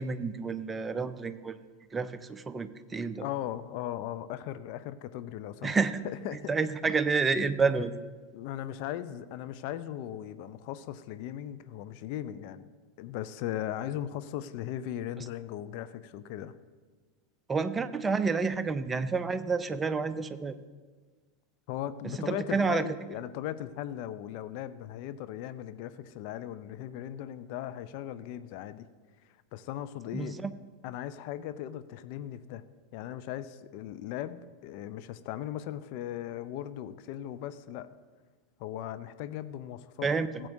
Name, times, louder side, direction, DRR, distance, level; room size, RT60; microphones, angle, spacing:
voice 1, 0.0-1.6 1.9-3.2 5.6-6.0 6.5-8.0 17.5-20.5 22.2-22.8 30.1-30.5 40.0-40.5, right 4 dB, 15° right, 11 dB, 0.5 m, -29 dB
voice 2, 3.2-5.7 6.0-6.5 8.3-12.7 13.0-16.6 21.7-28.9 29.2-30.4 30.8-32.6 32.9-37.9 38.6-40.1 40.4-40.5, left 11 dB, 50° left, 12 dB, 0.5 m, -38 dB
16.0 x 7.6 x 2.7 m, 1.4 s
figure-of-eight pair, 85°, 0 cm